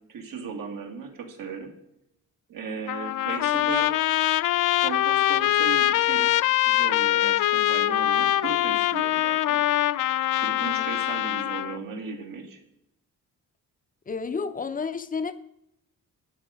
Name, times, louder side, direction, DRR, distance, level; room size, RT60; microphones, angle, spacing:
voice 1, 0.1-1.7 2.5-4.0 4.8-6.4 6.7-9.6 10.4-12.6, right 5 dB, 75° right, 2.4 m, -36 dB
Trumpet, 2.9-11.8, left 14 dB, 65° left, 0.5 m, -23 dB
voice 2, 14.1-15.3, left 5 dB, 25° left, 0.8 m, -31 dB
12.5 x 9.0 x 5.3 m
cardioid pair, 135°, 34 cm